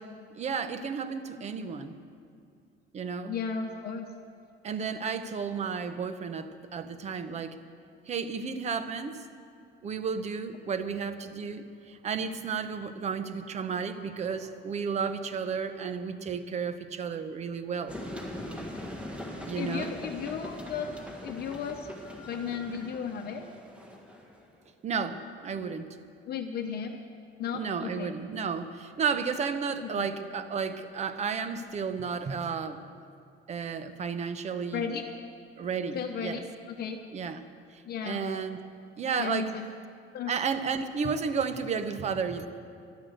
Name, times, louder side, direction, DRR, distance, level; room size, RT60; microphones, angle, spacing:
voice 1, 0.3-1.9 2.9-3.3 4.6-7.6 8.1-9.2 9.8-18.0 19.4-19.9 24.8-25.9 27.5-32.8 33.5-34.9 35.6-36.4 37.1-37.4 37.7-38.6 39.0-39.5 40.3-42.5, right 6 dB, 30° right, 11 dB, 0.8 m, -32 dB
voice 2, 3.3-4.1 19.5-20.9 21.2-21.9 22.3-23.4 26.3-27.0 27.4-28.2 29.8-30.2 34.7-35.0 35.9-37.0 37.8-38.2 39.2-39.7 40.1-40.3, left 6 dB, 50° left, 4 dB, 0.9 m, -34 dB
sound 1, 17.9-24.5, left 1 dB, 5° right, 1.5 m, -41 dB
13.5 x 11.5 x 8.0 m, 2.4 s
cardioid pair, 175°, 21 cm